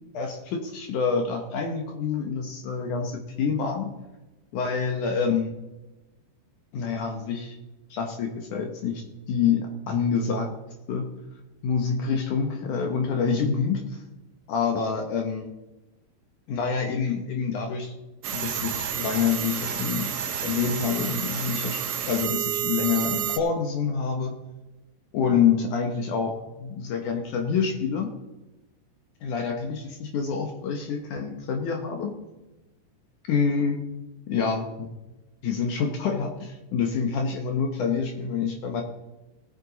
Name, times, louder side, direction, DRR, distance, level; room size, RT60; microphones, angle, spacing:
voice 1, 0.1-3.9 4.5-5.6 6.7-7.6 7.9-9.0 9.3-10.5 10.9-11.1 11.6-14.0 14.5-15.5 16.5-17.9 18.3-20.1 20.4-21.8 22.1-24.4 25.1-28.1 29.2-32.1 33.3-33.8 34.3-34.9 35.4-38.8, left 6 dB, 70° left, 3 dB, 2.0 m, -27 dB
sound 1, 18.2-23.4, right 8 dB, 85° right, 1.6 m, -30 dB
18.5 x 7.7 x 4.0 m, 1.0 s
omnidirectional pair, 4.7 m